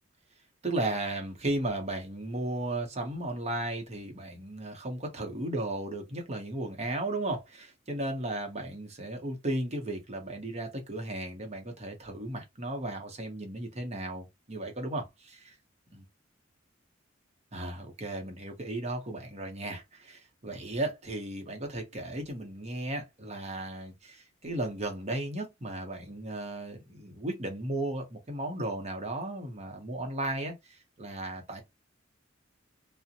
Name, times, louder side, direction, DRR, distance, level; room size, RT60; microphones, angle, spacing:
voice 1, 0.6-15.5 15.9-16.0 17.5-24.2 24.4-30.5 31.0-31.6, right 1 dB, 35° right, 0.8 m, -35 dB
2.5 x 2.1 x 2.7 m
head